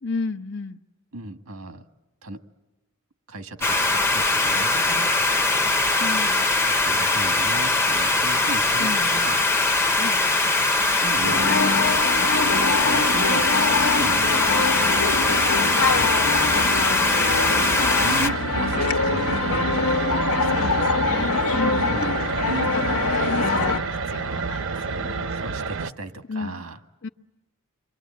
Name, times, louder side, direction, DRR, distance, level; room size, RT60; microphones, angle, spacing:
voice 1, 0.0-0.8 6.0-6.5 8.8-9.1 10.0-10.2 20.5-21.9 22.5-22.8 23.1-25.3 26.3-26.6 27.0-27.1, left 4 dB, 55° left, 7 dB, 0.9 m, -32 dB
voice 2, 1.1-1.8 2.2-2.4 3.3-5.1 6.7-9.4 11.0-11.7 12.9-13.5 13.8-14.4 15.9-16.7 17.6-19.8 21.8-23.0 25.3-26.8, right 2 dB, 90° right, 7 dB, 1.7 m, -36 dB
sound 1, 3.6-18.3, left 2 dB, 10° left, 0.8 m, -21 dB
sound 2, 11.2-23.8, left 4 dB, 85° left, 1.4 m, -24 dB
sound 3, 11.8-25.9, right 4 dB, 60° right, 0.9 m, -30 dB
28.5 x 24.0 x 8.6 m, 1.1 s
head